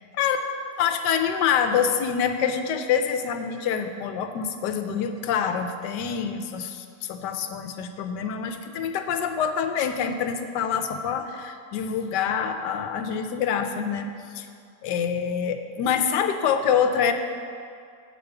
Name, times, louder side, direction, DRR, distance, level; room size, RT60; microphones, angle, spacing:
voice 1, 0.8-14.1 14.3-14.5 14.8-17.1, left 7 dB, 85° left, 7 dB, 1.2 m, -26 dB
8.0 x 5.2 x 6.8 m, 2.3 s
omnidirectional pair, 1.8 m